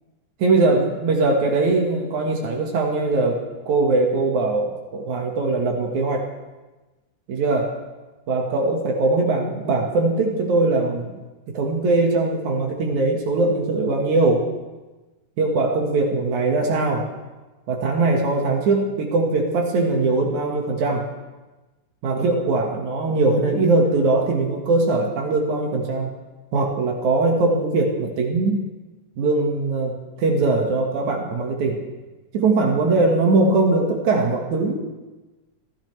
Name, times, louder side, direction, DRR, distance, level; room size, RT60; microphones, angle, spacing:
voice 1, 0.4-6.3 7.3-7.8 8.3-11.1 11.5-14.5 15.4-17.1 17.7-21.1 22.0-26.1 26.5-28.7 29.2-29.9 30.2-31.8 32.3-34.8, right 3 dB, 75° right, 1 dB, 3.1 m, -21 dB
26.5 x 15.5 x 3.3 m, 1.2 s
omnidirectional pair, 3.4 m